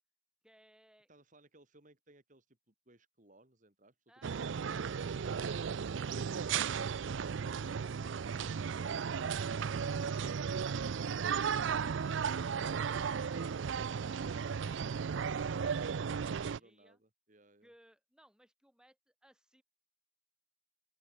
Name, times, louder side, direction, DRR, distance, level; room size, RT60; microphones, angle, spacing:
voice 1, 0.4-1.1 16.2-17.0 17.6-19.6, equal, 5° right, 6.3 m, -66 dB
voice 2, 1.1-5.9 16.4-17.7, right 2 dB, 40° right, 3.0 m, -64 dB
sound 1, 4.2-16.6, right 6 dB, 70° right, 0.4 m, -35 dB
open air
head